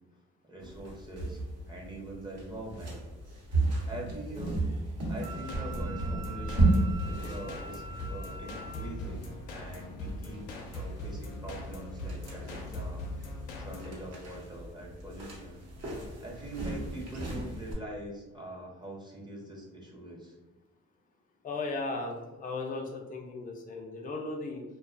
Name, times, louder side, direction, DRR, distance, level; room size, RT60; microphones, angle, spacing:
voice 1, 0.5-1.4 1.7-2.9 3.9-4.6 5.1-7.8 8.1-13.1 13.6-15.6 16.2-20.3, right 1 dB, 15° right, -2 dB, 0.6 m, -43 dB
sound 1, 0.6-17.7, right 2 dB, 55° right, 0.9 m, -34 dB
sound 2, 5.0-13.9, left 1 dB, 85° left, 0.6 m, -40 dB
Wind instrument woodwind instrument, 5.2-8.9, right 3 dB, 90° right, 0.8 m, -45 dB
voice 2, 21.4-24.6, left 3 dB, 30° left, 1 dB, 0.5 m, -36 dB
2.4 x 2.3 x 2.3 m, 1.1 s
cardioid pair, 90°, 30 cm